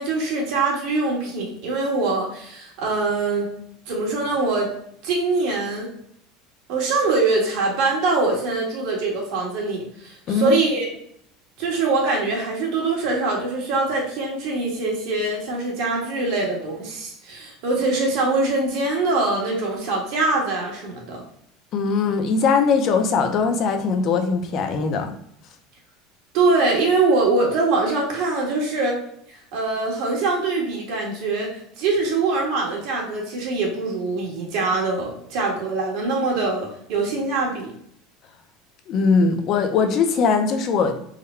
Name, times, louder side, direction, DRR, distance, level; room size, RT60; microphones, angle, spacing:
voice 1, 0.0-3.6 3.9-4.7 5.0-5.9 6.7-10.9 11.6-21.2 26.3-29.0 29.3-37.7, right 3 dB, 65° right, -2 dB, 1.5 m, -23 dB
voice 2, 10.3-10.6 21.7-25.1 38.9-40.9, left 5 dB, 45° left, 6 dB, 0.5 m, -20 dB
3.6 x 2.1 x 4.4 m, 0.68 s
supercardioid pair, 140°, 0 cm